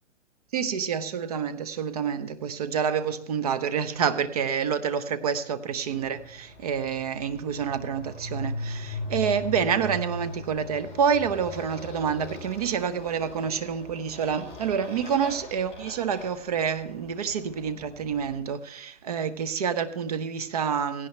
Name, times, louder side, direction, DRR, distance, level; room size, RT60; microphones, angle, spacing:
voice 1, 0.5-21.1, right 7 dB, 30° right, 0.9 m, -28 dB
Motorcycle, 5.8-18.5, left 2 dB, 15° left, 3.7 m, -39 dB
17.5 x 16.5 x 3.3 m
hypercardioid pair, 165°, 39 cm